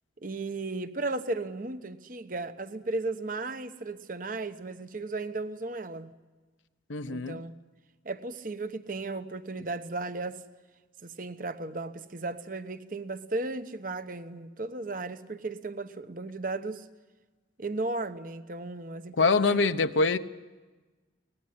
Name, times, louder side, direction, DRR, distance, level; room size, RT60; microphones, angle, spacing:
voice 1, 0.2-6.1 7.1-7.5 8.0-10.4 11.0-16.9 17.6-19.7, right 2 dB, 45° right, 1.0 m, -35 dB
voice 2, 6.9-7.4 19.2-20.2, left 4 dB, 90° left, 0.9 m, -24 dB
23.5 x 19.0 x 9.8 m
head